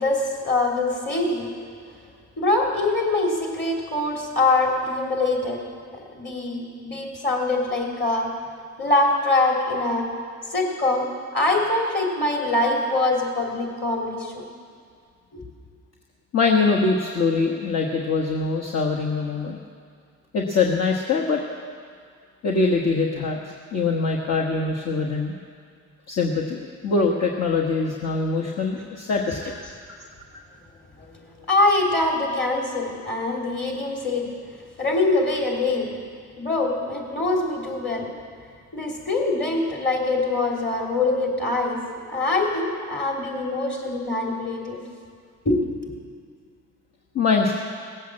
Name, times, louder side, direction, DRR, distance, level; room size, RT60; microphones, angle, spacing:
voice 1, 0.0-1.5 2.4-5.6 6.2-8.3 8.8-10.1 10.5-14.4 15.3-15.4 31.0-34.3 34.8-36.0 36.4-38.1 38.7-44.8 45.5-46.0, left 2 dB, 40° left, 0 dB, 3.5 m, -24 dB
voice 2, 16.3-19.6 20.3-21.4 22.4-25.3 26.1-29.5 47.1-47.5, left 4 dB, 60° left, -1 dB, 1.4 m, -23 dB
18.0 x 8.1 x 7.6 m, 2.1 s
cardioid pair, 90°, 30 cm